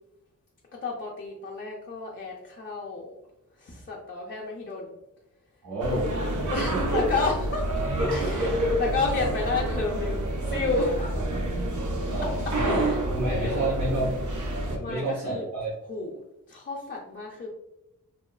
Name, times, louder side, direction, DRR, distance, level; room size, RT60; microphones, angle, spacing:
voice 1, 0.8-3.1 3.6-4.9 6.5-7.7 8.1-8.5 8.8-11.2 12.6-13.0 13.3-13.8 14.7-15.4 15.9-16.1 16.5-17.5, left 4 dB, 35° left, -4 dB, 0.4 m, -31 dB
voice 2, 5.6-6.1 6.4-7.1 8.0-8.9 11.3-11.4 12.1-12.8 13.1-14.1 14.6-15.7, right 1 dB, 85° right, -8 dB, 1.1 m, -29 dB
sound 1, 5.8-14.8, right 1 dB, 60° right, 0.5 m, -29 dB
2.9 x 2.3 x 2.3 m, 0.85 s
wide cardioid pair, 105°, 34 cm